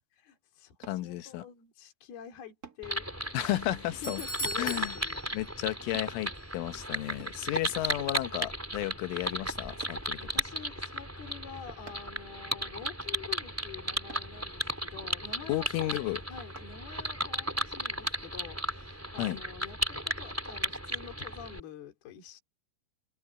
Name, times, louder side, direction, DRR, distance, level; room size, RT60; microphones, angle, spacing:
voice 1, 0.1-3.1 3.4-3.5 3.9-5.2 9.2-9.3 10.2-22.4, left 8 dB, 55° left, 5.7 m, -47 dB
sound 1, 0.8-1.1 2.6-2.9 4.1-4.3 5.9-6.2 7.2-7.5 8.4-8.6 9.8-10.1 11.9-12.2 14.1-14.3 16.5-16.7 17.3-17.4, right 5 dB, 85° right, 0.8 m, -48 dB
voice 2, 0.9-1.4 3.3-4.2 4.6-4.9 5.3-10.2 15.5-16.2 19.2-19.4, left 15 dB, 85° left, 3.7 m, -33 dB
sound 2, 2.8-21.6, right 1 dB, 5° right, 3.0 m, -35 dB
Doorbell, 3.6-6.1 6.3-6.4 7.2-7.3, right 1 dB, 20° left, 2.1 m, -40 dB
omnidirectional pair, 5.6 m